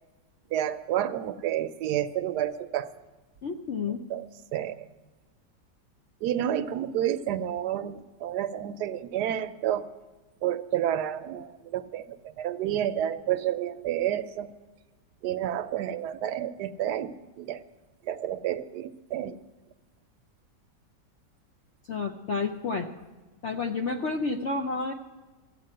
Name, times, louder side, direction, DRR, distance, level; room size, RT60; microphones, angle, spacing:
voice 1, 0.5-2.9 4.1-4.3 4.5-4.7 6.2-9.9 10.4-14.5 15.2-17.1 17.4-17.6 18.1-19.4, right 11 dB, 75° right, 12 dB, 1.1 m, -30 dB
voice 2, 3.4-4.0 21.9-22.9 23.4-24.9, left 4 dB, 60° left, 4 dB, 0.8 m, -30 dB
14.0 x 8.5 x 7.6 m, 1.3 s
omnidirectional pair, 1.9 m